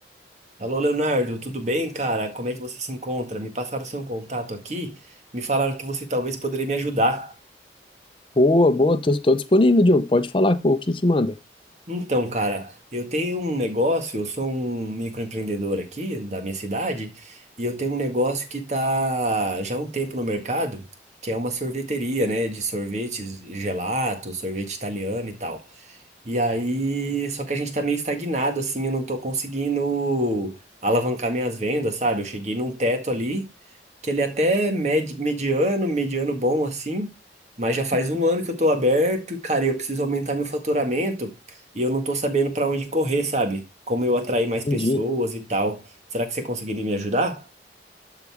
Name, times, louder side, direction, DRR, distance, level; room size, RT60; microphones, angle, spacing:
voice 1, 0.6-5.0 5.3-7.3 11.9-20.8 21.2-25.6 26.2-30.5 30.8-33.5 34.0-37.1 37.6-41.3 41.7-45.8 46.1-47.4, right 1 dB, 40° right, 1.7 m, -25 dB
voice 2, 8.4-11.4 44.7-45.0, left 2 dB, 30° left, 0.7 m, -19 dB
12.0 x 4.1 x 3.5 m
head